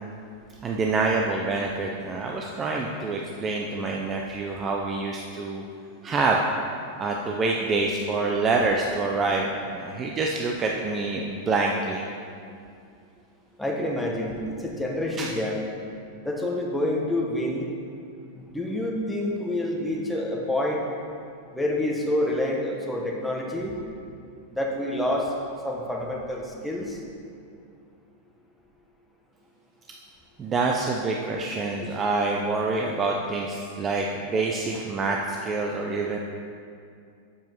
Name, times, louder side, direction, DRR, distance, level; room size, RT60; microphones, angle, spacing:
voice 1, 0.6-5.6 6.0-6.4 7.0-12.1 15.2-15.3 30.4-36.2, right 3 dB, 20° right, 0 dB, 0.6 m, -26 dB
voice 2, 13.6-15.6 16.2-17.7 18.3-20.8 21.5-23.7 24.5-25.3 25.6-27.0, left 1 dB, 5° left, -2 dB, 1.2 m, -27 dB
7.1 x 5.8 x 6.0 m, 2.4 s
supercardioid pair, 140°, 0 cm